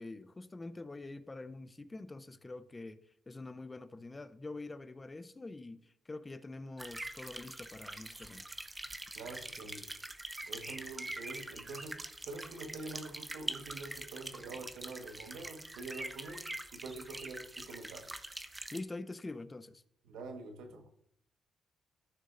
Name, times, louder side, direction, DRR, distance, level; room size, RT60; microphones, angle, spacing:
voice 1, 0.0-8.5 18.7-19.8, left 2 dB, 25° left, 0.6 m, -45 dB
sound 1, 6.8-18.8, right 2 dB, 15° right, 0.7 m, -44 dB
voice 2, 9.1-9.9 10.4-18.1 20.1-20.9, right 3 dB, 80° right, 1.4 m, -46 dB
14.5 x 6.3 x 2.6 m
supercardioid pair, 75°, 0 cm